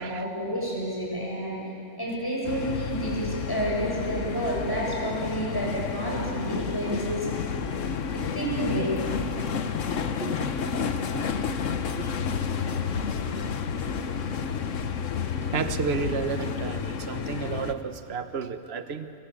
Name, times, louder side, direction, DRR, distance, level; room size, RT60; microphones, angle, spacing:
voice 1, 0.0-1.6 2.0-7.3 8.1-9.0, right 1 dB, 15° left, -3 dB, 7.7 m, -30 dB
sound 1, 2.4-17.7, left 6 dB, 75° left, 1.4 m, -30 dB
voice 2, 15.5-19.1, right 6 dB, 55° right, 10 dB, 1.4 m, -32 dB
29.5 x 23.5 x 8.5 m, 2.7 s
omnidirectional pair, 1.3 m